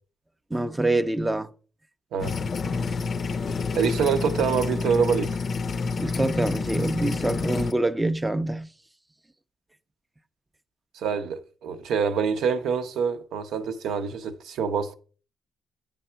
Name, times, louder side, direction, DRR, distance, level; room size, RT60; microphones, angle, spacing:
voice 1, 0.5-1.5 6.0-8.7, right 2 dB, 10° right, 0.4 m, -25 dB
sound 1, 2.2-7.7, left 4 dB, 45° left, 0.5 m, -28 dB
voice 2, 3.7-5.4 10.9-14.9, right 6 dB, 80° right, 0.7 m, -26 dB
9.2 x 3.4 x 5.6 m
cardioid pair, 90°, 0 cm